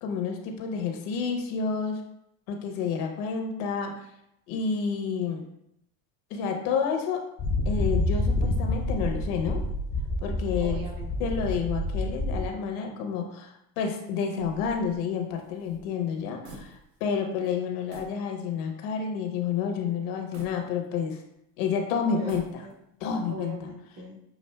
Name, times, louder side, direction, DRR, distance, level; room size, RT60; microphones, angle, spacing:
voice 1, 0.0-2.0 2.5-4.0 4.5-5.5 6.3-7.2 7.7-9.6 10.2-10.8 11.2-21.2 21.6-22.4 23.0-23.7, left 6 dB, 75° left, 3 dB, 0.9 m, -29 dB
sound 1, 7.4-12.4, left 1 dB, 25° left, 0.4 m, -28 dB
voice 2, 10.6-11.3 22.1-22.7 23.3-24.2, right 1 dB, 55° right, -2 dB, 1.4 m, -41 dB
sound 2, 14.3-17.2 17.4-17.6 17.9-18.2 18.7-18.8 20.3-21.3 22.1-23.0, right 1 dB, 90° right, 0.9 m, -48 dB
6.9 x 2.5 x 2.2 m, 0.79 s
supercardioid pair, 105°, 41 cm